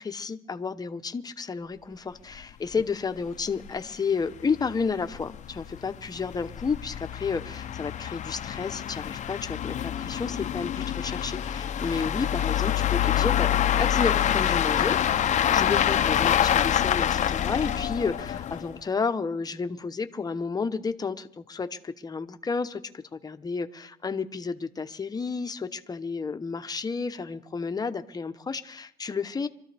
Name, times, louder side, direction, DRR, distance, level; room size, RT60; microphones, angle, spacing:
voice 1, 0.0-13.5 13.8-22.8 23.1-29.5, left 5 dB, 25° left, 0.9 m, -31 dB
sound 1, 2.4-2.5 2.7-2.8 3.3-3.4 3.7-3.8 4.4-18.8, left 10 dB, 45° left, 0.6 m, -26 dB
25.5 x 13.5 x 3.4 m
cardioid pair, 110°, 17 cm